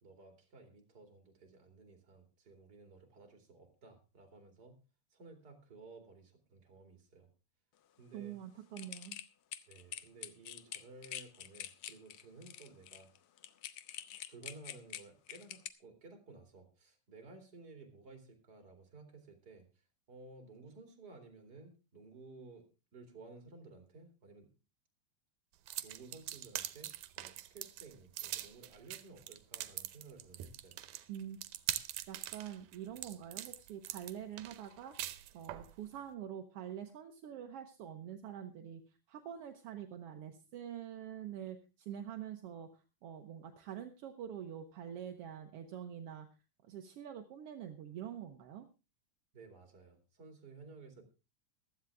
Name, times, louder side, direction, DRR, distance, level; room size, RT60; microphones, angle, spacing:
voice 1, 0.0-4.8 5.1-7.3 8.0-8.4 9.7-13.1 14.3-24.5 25.8-30.8 49.3-51.0, right 3 dB, 35° right, 5 dB, 3.0 m, -55 dB
voice 2, 8.1-9.2 31.1-31.4 32.1-34.9 35.3-38.8 39.1-46.3 46.6-48.7, right 9 dB, 65° right, 5 dB, 1.6 m, -46 dB
sound 1, 8.8-15.7, left 12 dB, 80° left, 1.3 m, -46 dB
sound 2, 25.7-35.7, right 13 dB, 90° right, 2.3 m, -43 dB
15.5 x 12.5 x 3.5 m, 0.30 s
omnidirectional pair, 3.5 m